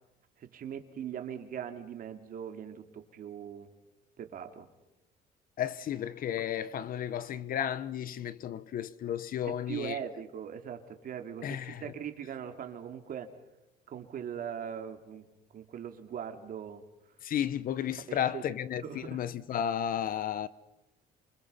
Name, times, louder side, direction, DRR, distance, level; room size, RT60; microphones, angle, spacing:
voice 1, 0.4-3.7 4.2-4.7 9.4-13.3 13.9-15.2 15.5-16.8 18.1-18.6 18.8-19.2, right 8 dB, 55° right, 2.9 m, -40 dB
voice 2, 5.6-10.0 11.4-11.8 17.2-20.5, left 9 dB, 55° left, 1.1 m, -33 dB
28.5 x 25.5 x 5.7 m
cardioid pair, 110°, 17 cm